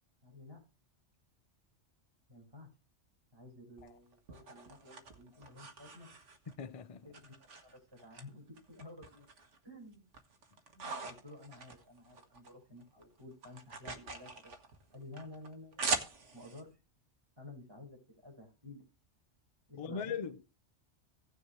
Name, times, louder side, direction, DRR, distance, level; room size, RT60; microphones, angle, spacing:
voice 1, 0.2-0.6 2.3-2.7 3.3-6.1 7.0-9.3 9.6-10.0 10.7-14.5 14.9-16.7 17.4-18.8 19.7-20.2, left 2 dB, 20° right, 5.2 m, -52 dB
sound 1, 3.8-6.6 7.1-8.2 8.6-9.6 9.9-12.5 12.8-16.6, right 4 dB, 75° right, 1.7 m, -42 dB
voice 2, 6.6-7.1 19.8-20.5, left 6 dB, 35° left, 0.7 m, -40 dB
16.5 x 6.7 x 3.2 m
omnidirectional pair, 1.2 m